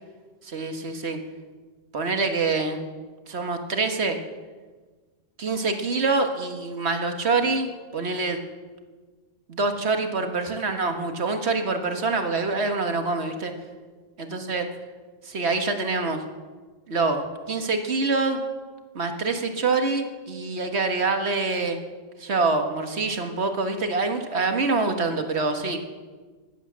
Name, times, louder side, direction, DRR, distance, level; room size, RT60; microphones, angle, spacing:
voice 1, 0.4-1.2 1.9-2.8 3.3-4.2 5.4-8.4 9.5-13.5 14.2-14.7 15.2-16.2 16.9-18.4 18.9-21.8 22.2-25.8, right 3 dB, 85° right, 5 dB, 1.8 m, -25 dB
15.5 x 11.0 x 7.4 m, 1.4 s
omnidirectional pair, 1.1 m